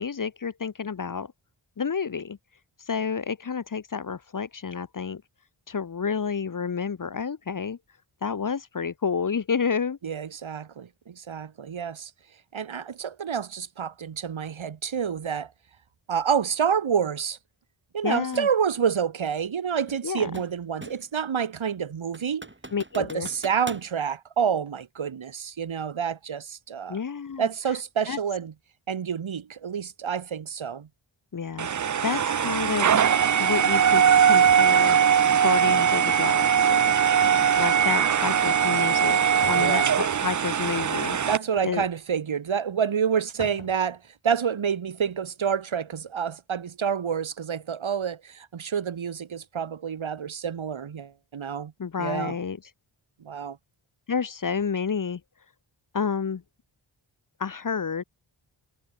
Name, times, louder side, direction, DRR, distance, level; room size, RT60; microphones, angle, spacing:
voice 1, 0.0-1.3 1.8-2.4 2.9-5.2 5.7-7.8 8.2-10.0 18.0-18.5 20.0-20.3 22.7-23.3 26.9-27.5 28.1-28.2 31.3-33.0 33.4-35.0 35.4-37.0 37.6-41.2 41.6-41.8 51.8-52.6 54.1-55.2 55.9-56.4 57.4-58.0, left 6 dB, 40° left, 0.7 m, -30 dB
voice 2, 10.0-12.1 12.5-15.5 16.1-17.4 17.9-22.5 22.9-27.0 27.4-28.5 28.9-30.9 39.6-39.9 41.3-51.7 52.0-52.4 53.2-53.6, right 7 dB, 70° right, 1.2 m, -28 dB
sound 1, 18.3-18.5 19.9-21.2 21.6-21.7 22.1-23.9, right 2 dB, 20° right, 6.3 m, -42 dB
sound 2, 31.6-41.4, right 8 dB, 40° right, 0.4 m, -21 dB
sound 3, 37.2-37.9 39.4-40.1 41.5-42.0 42.5-42.6 42.8-42.9 43.4-43.9 44.3-44.4, left 5 dB, 75° left, 4.4 m, -43 dB
wide cardioid pair, 90°, 49 cm